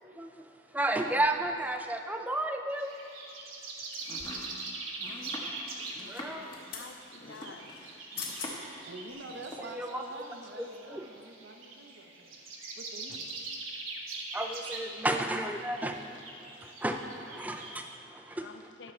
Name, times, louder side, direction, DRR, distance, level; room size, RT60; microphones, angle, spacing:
voice 1, 0.7-3.0 6.1-6.5 9.6-10.0 10.9-11.1 14.3-18.7, right 1 dB, 10° right, 4 dB, 0.4 m, -33 dB
sound 1, 2.7-17.8, right 3 dB, 90° right, 1.2 m, -43 dB
sound 2, 3.9-4.5 6.2-6.9 7.9-8.0 8.1-8.5 9.1-9.2, left 5 dB, 45° left, 1.8 m, -42 dB
Domestic sounds home sounds, 4.0-8.8 9.1-9.7, left 1 dB, 25° left, 0.9 m, -45 dB
voice 2, 5.8-7.7 18.4-18.9, left 4 dB, 60° left, 6 dB, 0.6 m, -50 dB
voice 3, 8.9-12.4 12.7-13.4, right 2 dB, 60° right, 4 dB, 0.7 m, -46 dB
11.0 x 6.7 x 4.3 m, 2.5 s
head